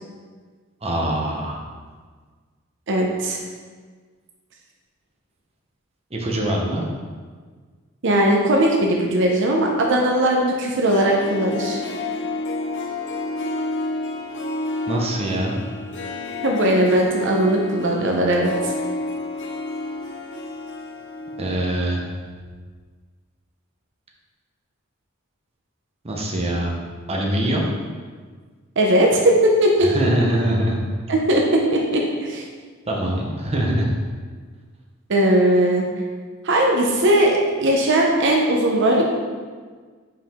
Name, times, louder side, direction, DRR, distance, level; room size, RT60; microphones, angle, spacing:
voice 1, 0.8-1.6 6.1-6.9 14.9-15.6 21.4-22.0 26.0-26.7 27.1-27.7 29.8-30.8 32.9-33.9, right 1 dB, 30° right, -1 dB, 0.8 m, -23 dB
voice 2, 2.9-3.4 8.0-11.8 16.4-18.5 28.8-29.9 31.1-31.4 31.7-32.4 35.1-35.9 36.4-39.0, right 1 dB, 60° right, 0 dB, 0.7 m, -18 dB
Harp, 10.7-21.7 22.0-22.1, left 2 dB, 60° left, 0.6 m, -30 dB
5.7 x 4.8 x 3.5 m, 1.5 s
head